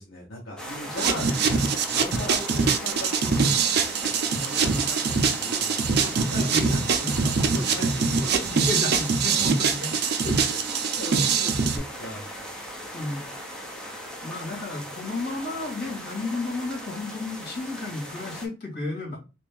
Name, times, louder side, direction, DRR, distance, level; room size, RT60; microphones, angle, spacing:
voice 1, 0.0-1.4 1.9-3.6 4.4-8.7 10.2-12.2, equal, 75° left, -5 dB, 1.1 m, -38 dB
sound 1, 0.6-18.5, equal, 5° left, 0.7 m, -38 dB
sound 2, 1.0-11.8, right 5 dB, 55° right, 0.5 m, -24 dB
voice 2, 6.4-7.3 8.7-9.9 12.9-13.3 13.8-19.2, left 2 dB, 55° left, -2 dB, 2.1 m, -33 dB
3.3 x 2.6 x 3.5 m, 0.29 s
head